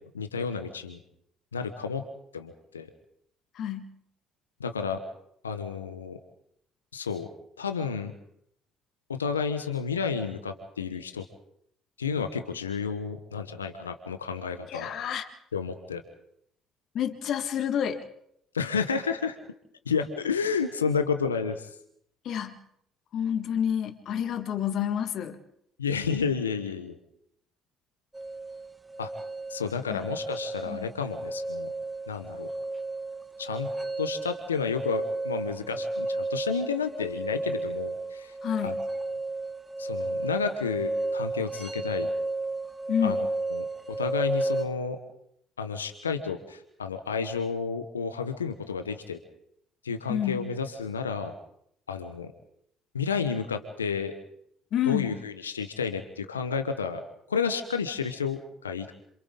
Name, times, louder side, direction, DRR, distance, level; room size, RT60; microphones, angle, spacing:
voice 1, 0.1-1.0 1.5-2.0 2.3-2.9 4.6-5.0 5.4-6.2 6.9-7.3 7.6-8.1 9.1-11.2 12.0-14.9 15.5-16.0 18.5-19.4 19.9-21.7 25.8-27.0 29.0-29.1 29.5-31.7 32.1-32.5 33.4-33.7 34.0-38.3 38.6-38.8 39.0-39.1 39.8-42.1 43.0-43.7 44.0-45.0 45.6-49.2 49.8-51.3 51.9-52.3 52.9-54.1 54.9-57.0 57.3-58.9, left 5 dB, 90° left, 8 dB, 1.1 m, -31 dB
voice 2, 3.6-3.9 14.7-15.3 16.9-18.1 22.3-22.6 23.1-25.4 29.9-30.1 30.7-30.9 38.4-38.8 42.9-43.2 50.1-50.5 54.7-55.1, left 9 dB, 55° left, 8 dB, 1.8 m, -29 dB
sound 1, 28.1-44.7, right 2 dB, 15° right, 1.4 m, -33 dB
27.5 x 26.5 x 3.9 m, 0.73 s
hypercardioid pair, 55°, 0 cm